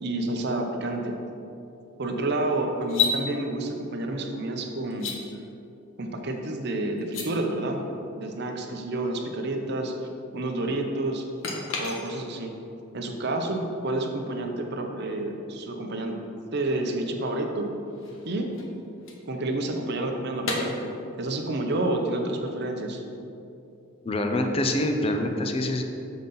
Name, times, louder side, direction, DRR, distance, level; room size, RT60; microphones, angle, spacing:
voice 1, 0.0-1.2 2.0-5.1 6.0-7.8 8.1-9.9 10.3-11.2 11.8-12.5 12.9-16.2 16.5-17.7 18.2-18.5 19.3-20.9 21.2-23.0, right 2 dB, 50° right, 3 dB, 0.7 m, -29 dB
sound 1, 2.8-3.2 4.9-5.2 7.0-7.3 11.4-12.5 15.6-15.7 17.7-19.8 20.4-20.6, left 5 dB, 70° left, 1.0 m, -31 dB
voice 2, 24.0-25.8, left 1 dB, 25° left, 4 dB, 0.5 m, -25 dB
7.2 x 3.9 x 5.4 m, 2.8 s
head